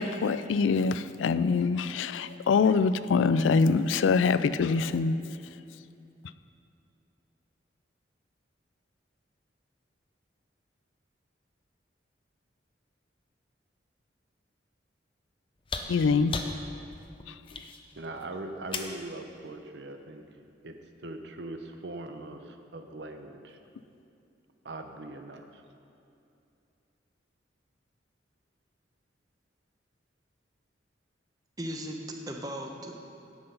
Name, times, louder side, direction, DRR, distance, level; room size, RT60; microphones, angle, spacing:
voice 1, 0.0-5.2 15.9-16.3, left 5 dB, 85° left, 0.4 m, -24 dB
sound 1, 15.6-19.1 20.5-20.6, left 4 dB, 30° left, 0.6 m, -37 dB
voice 2, 17.9-20.2 20.6-23.6 24.6-25.6, right 2 dB, 65° right, 0.7 m, -41 dB
voice 3, 31.6-32.9, equal, 20° right, 0.9 m, -37 dB
10.5 x 7.8 x 5.5 m
head